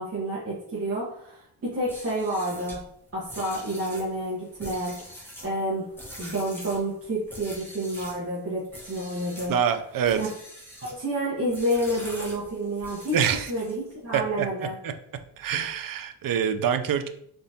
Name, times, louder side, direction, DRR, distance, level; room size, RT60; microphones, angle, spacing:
voice 1, 0.0-2.8 3.1-5.9 6.2-9.5 10.2-10.3 10.8-13.2 13.5-14.8, right 1 dB, 35° right, -8 dB, 1.1 m, -29 dB
sound 1, 1.8-8.2 8.7-9.6 10.0-11.0 11.5-13.9, equal, 5° left, 1.1 m, -44 dB
voice 2, 9.5-10.2 13.1-13.5 14.1-14.5 14.8-14.9 15.4-17.1, right 8 dB, 55° right, 8 dB, 0.5 m, -25 dB
3.8 x 3.5 x 2.8 m, 0.69 s
wide cardioid pair, 135°, 42 cm